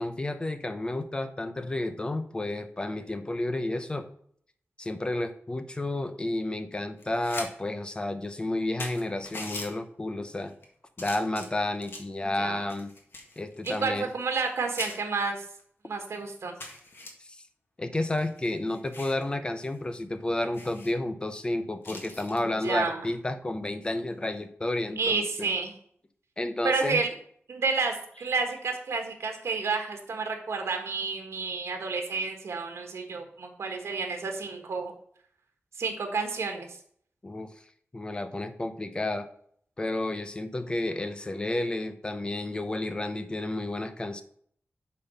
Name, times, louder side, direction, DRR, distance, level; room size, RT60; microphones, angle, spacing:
voice 1, 0.0-4.1 4.8-10.5 11.0-12.9 13.4-14.1 17.2-17.4 17.8-25.5 26.4-27.0 37.2-37.5 37.9-39.3 39.8-44.2, left 2 dB, 20° left, 9 dB, 0.7 m, -31 dB
sound 1, 7.0-7.5 7.8-7.9 8.5-8.6 8.8-9.7 10.4-10.6 11.0-12.1 12.7-14.5 14.8-15.0 15.6-15.7 16.0-16.1 16.6-17.1 18.0-19.2 19.6-19.8 20.0-20.1 20.5-20.9 21.8-22.4 24.1-24.4, left 2 dB, 55° left, 1.8 m, -41 dB
voice 2, 12.2-12.6 13.6-15.4 15.8-16.5 22.6-23.0 25.0-25.7 26.6-27.1 27.5-34.9 35.8-36.8, right 4 dB, 85° right, 4 dB, 1.5 m, -30 dB
8.7 x 4.4 x 5.5 m, 0.62 s
wide cardioid pair, 160°, 4 cm